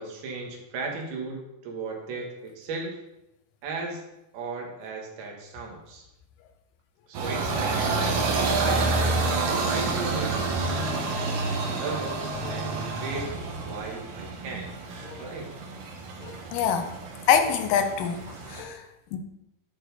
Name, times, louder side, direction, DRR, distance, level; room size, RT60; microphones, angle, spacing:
voice 1, 0.0-3.0 3.6-4.0 4.3-6.1 7.1-8.9 9.5-11.1 11.6-13.3 13.6-14.7 15.2-15.5, right 3 dB, 85° right, 1 dB, 3.3 m, -36 dB
sound 1, 7.1-18.6, right 3 dB, 70° right, 2.7 m, -29 dB
voice 2, 16.2-17.0 17.3-19.2, left 7 dB, 75° left, 6 dB, 2.1 m, -26 dB
11.0 x 4.4 x 3.9 m, 0.90 s
omnidirectional pair, 4.3 m